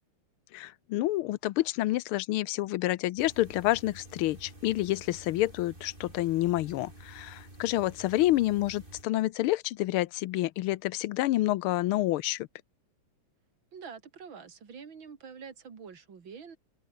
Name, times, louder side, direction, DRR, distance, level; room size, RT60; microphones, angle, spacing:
voice 1, 0.5-12.5, left 16 dB, 85° left, 1.5 m, -28 dB
sound 1, 3.2-9.0, right 1 dB, 25° right, 5.5 m, -50 dB
voice 2, 13.7-16.6, right 6 dB, 65° right, 3.0 m, -46 dB
omnidirectional pair, 2.3 m